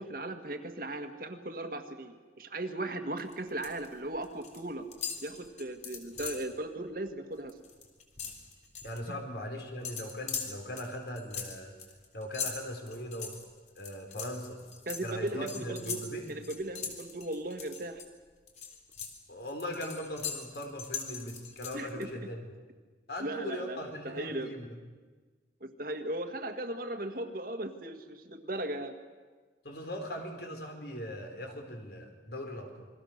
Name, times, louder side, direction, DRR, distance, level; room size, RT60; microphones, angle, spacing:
voice 1, 0.0-4.8 5.2-7.5 9.1-9.2 14.8-18.0 21.7-22.1 23.2-24.5 25.6-28.9, right 1 dB, 50° right, 7 dB, 1.8 m, -37 dB
sound 1, 3.2-3.9 4.1-4.6 4.9-6.5 6.9-7.1 7.4-9.0 9.8-18.1 18.5-22.1, left 6 dB, 40° left, 3.7 m, -40 dB
voice 2, 8.8-11.7 12.1-13.3 13.7-14.6 15.0-16.3 19.3-22.5 23.1-24.7 29.6-32.9, left 1 dB, 60° left, 3 dB, 4.6 m, -40 dB
28.5 x 22.5 x 6.7 m, 1.4 s
head